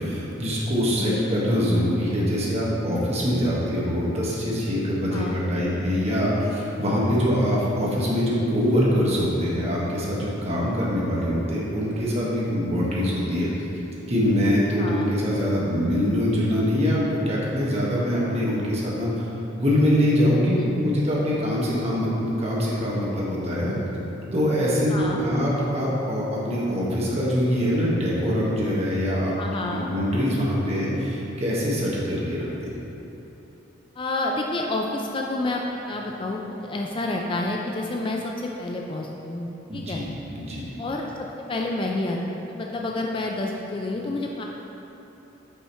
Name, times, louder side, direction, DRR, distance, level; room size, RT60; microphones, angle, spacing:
voice 1, 0.0-13.5 14.1-19.1 19.5-23.7 24.3-29.3 29.6-32.7 39.7-40.1 40.3-40.7, equal, 35° right, -6 dB, 1.2 m, -24 dB
voice 2, 0.9-1.3 5.1-5.4 14.8-15.1 20.4-20.7 24.9-25.2 29.4-29.9 34.0-40.0 40.8-44.4, left 2 dB, 25° left, 0 dB, 0.3 m, -29 dB
5.5 x 5.0 x 4.3 m, 3.0 s
head